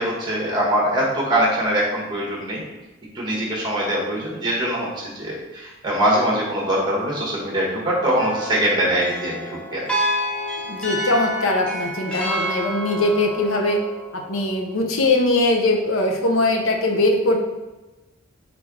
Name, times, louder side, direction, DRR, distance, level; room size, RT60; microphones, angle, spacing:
voice 1, 0.0-2.6 3.1-9.9, right 1 dB, 20° right, -4 dB, 1.1 m, -22 dB
sound 1, 8.2-14.5, equal, 5° left, 0.5 m, -28 dB
voice 2, 10.6-13.8 14.1-17.4, left 2 dB, 80° left, 3 dB, 0.7 m, -21 dB
3.7 x 3.2 x 3.6 m, 1.1 s
head